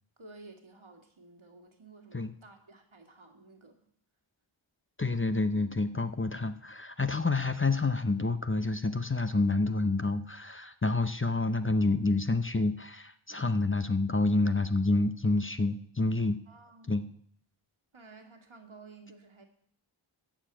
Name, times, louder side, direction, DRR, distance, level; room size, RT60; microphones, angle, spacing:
voice 1, 0.2-3.8 16.5-17.0 17.9-19.5, right 3 dB, 70° right, 3 dB, 2.1 m, -53 dB
voice 2, 5.0-16.4 16.9-17.1, left 3 dB, 25° left, 10 dB, 0.7 m, -28 dB
13.0 x 4.9 x 8.8 m, 0.63 s
wide cardioid pair, 45°, 49 cm